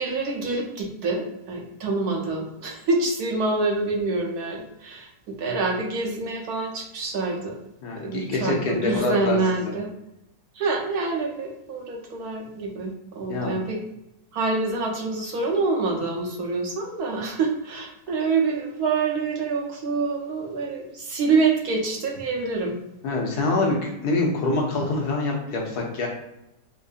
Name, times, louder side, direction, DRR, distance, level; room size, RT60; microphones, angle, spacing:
voice 1, 0.0-7.6 8.0-9.9 10.5-13.8 14.3-22.8, right 3 dB, 70° right, 0 dB, 1.1 m, -26 dB
voice 2, 7.8-9.4 13.3-13.6 23.0-26.1, left 2 dB, 70° left, -1 dB, 1.2 m, -25 dB
4.4 x 2.6 x 2.4 m, 0.86 s
omnidirectional pair, 1.9 m